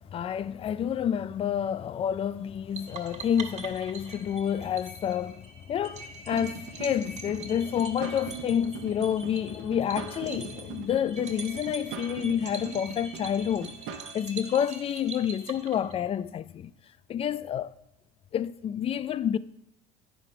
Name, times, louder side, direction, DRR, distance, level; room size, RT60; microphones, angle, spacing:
voice 1, 0.1-13.8 14.1-16.7 17.1-17.7 18.3-19.4, left 9 dB, 30° left, 0.4 m, -29 dB
sound 1, 2.8-16.2, right 4 dB, 40° right, 1.4 m, -44 dB
sound 2, 6.3-14.1, right 7 dB, 70° right, 1.1 m, -42 dB
sound 3, 8.7-12.4 12.7-12.8, left 11 dB, 75° left, 0.8 m, -47 dB
9.0 x 5.0 x 5.5 m
supercardioid pair, 105°, 18 cm